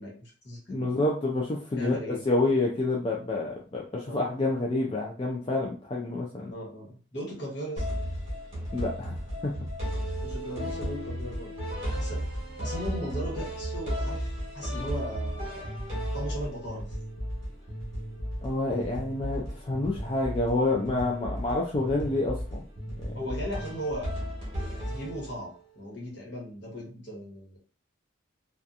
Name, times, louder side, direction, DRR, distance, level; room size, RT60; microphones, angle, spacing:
voice 1, 0.0-0.8 1.8-2.2 4.1-4.3 6.5-7.9 10.2-11.5 11.8-12.2 12.6-15.7 16.1-17.0 23.1-24.1 24.6-27.6, equal, 55° left, -3 dB, 1.1 m, -37 dB
voice 2, 0.7-6.5 8.7-9.2 9.4-9.5 18.4-22.6 23.0-23.1, left 2 dB, 25° left, -2 dB, 0.3 m, -28 dB
sound 1, 7.8-25.6, equal, 30° right, 1.0 m, -34 dB
2.7 x 2.3 x 2.4 m, 0.40 s
head